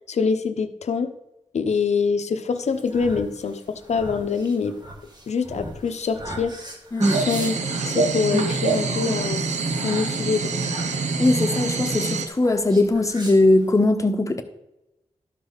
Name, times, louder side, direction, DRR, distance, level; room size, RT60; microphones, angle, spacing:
voice 1, 0.1-1.1 1.5-4.8 5.3-6.6 7.0-7.6 7.9-9.4 9.8-10.5, left 5 dB, 70° left, 0.7 m, -24 dB
sound 1, 2.6-13.8, right 1 dB, 35° right, 1.8 m, -33 dB
sound 2, 7.0-12.3, right 4 dB, 85° right, 0.8 m, -25 dB
voice 2, 11.2-14.4, left 2 dB, 25° left, 1.0 m, -20 dB
12.5 x 5.1 x 4.0 m
wide cardioid pair, 90°, 12 cm